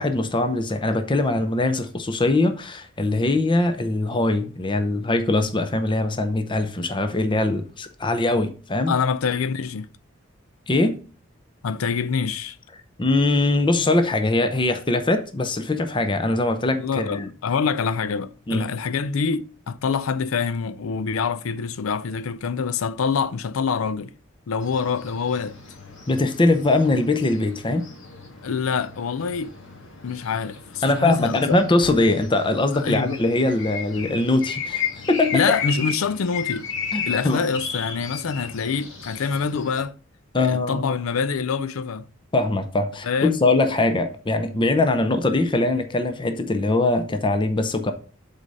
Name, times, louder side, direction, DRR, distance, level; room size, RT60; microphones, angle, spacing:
voice 1, 0.0-8.9 10.7-11.0 13.0-17.3 18.5-18.7 26.1-27.8 30.8-35.4 36.9-37.4 40.3-40.9 42.3-47.9, left 2 dB, 25° left, 0.6 m, -22 dB
voice 2, 8.9-9.9 11.6-12.6 16.7-24.1 24.5-25.6 28.4-29.5 30.0-31.6 32.8-33.2 35.3-36.7 37.1-39.9 40.4-42.1 43.0-43.4, left 5 dB, 80° left, 0.5 m, -25 dB
sound 1, 24.6-39.8, left 6 dB, 65° left, 1.6 m, -34 dB
8.1 x 4.1 x 5.3 m
head